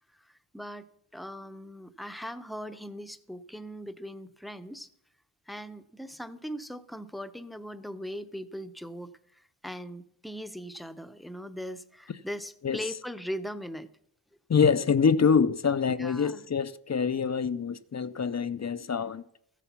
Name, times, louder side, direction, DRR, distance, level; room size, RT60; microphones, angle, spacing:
voice 1, 0.2-4.9 5.5-13.9 16.0-16.5, equal, ahead, 0.7 m, -40 dB
voice 2, 14.5-19.2, left 6 dB, 40° left, 0.5 m, -25 dB
14.0 x 8.3 x 5.8 m
cardioid pair, 60°, 45 cm